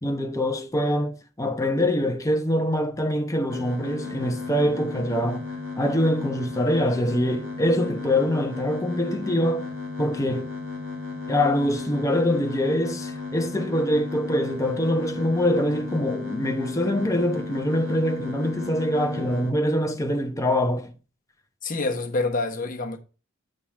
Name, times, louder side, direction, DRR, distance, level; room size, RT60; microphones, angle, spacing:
voice 1, 0.0-5.4 5.8-9.7 10.0-10.5 11.3-20.9, left 1 dB, 15° left, 0.9 m, -24 dB
sound 1, 3.5-19.5, left 3 dB, 70° right, 2.3 m, -35 dB
voice 2, 21.6-23.0, left 3 dB, 40° left, 1.1 m, -27 dB
8.7 x 3.9 x 4.8 m
head